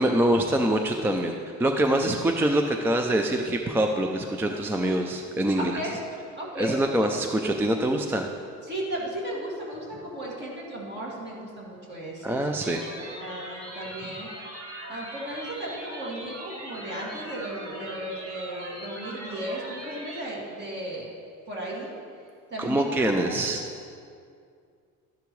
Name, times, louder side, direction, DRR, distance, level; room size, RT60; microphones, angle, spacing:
voice 1, 0.0-5.8 6.6-8.3 12.2-12.8 22.6-23.6, right 1 dB, 5° right, 4 dB, 0.3 m, -25 dB
voice 2, 5.6-5.9 6.3-7.1 8.6-12.6 12.9-14.3 14.9-21.1 21.5-21.9 22.5-23.4, right 1 dB, 35° right, -4 dB, 2.2 m, -35 dB
sound 1, 12.6-20.2, right 1 dB, 70° right, 2.8 m, -40 dB
12.5 x 10.5 x 3.1 m, 2.3 s
cardioid pair, 145°, 31 cm